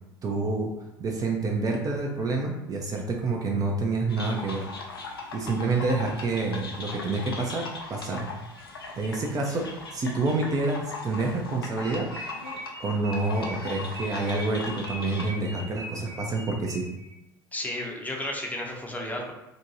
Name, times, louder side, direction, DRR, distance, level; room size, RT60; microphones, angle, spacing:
voice 1, 0.2-0.7 1.0-4.7 5.3-8.3 9.0-9.7 9.9-12.1 12.8-16.8, right 3 dB, 30° right, 0 dB, 0.5 m, -28 dB
sound 1, 4.1-15.3, left 3 dB, 85° left, 0.4 m, -39 dB
sound 2, 11.8-17.1, equal, 60° right, 0.7 m, -41 dB
voice 2, 17.5-19.3, left 1 dB, 15° left, 0 dB, 0.6 m, -33 dB
2.6 x 2.2 x 2.8 m, 0.91 s
hypercardioid pair, 70°, 12 cm